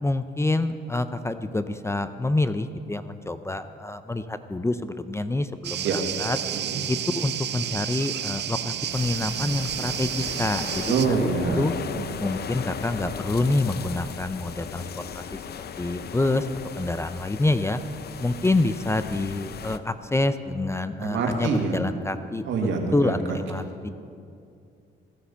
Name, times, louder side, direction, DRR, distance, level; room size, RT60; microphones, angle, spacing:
voice 1, 0.0-6.4 6.9-11.2 11.6-11.7 12.2-14.9 15.1-15.4 15.8-16.5 16.8-17.8 18.2-22.5 22.9-23.9, left 2 dB, 15° left, 11 dB, 0.6 m, -27 dB
sound 1, 5.6-11.1, right 10 dB, 60° right, 0.6 m, -31 dB
sound 2, 8.9-19.8, left 7 dB, 55° left, 0.7 m, -37 dB
voice 2, 10.9-12.1 21.0-21.8 22.5-23.4, right 4 dB, 75° right, 3 dB, 2.0 m, -26 dB
15.0 x 9.9 x 7.0 m, 2.5 s
cardioid pair, 90°, 20 cm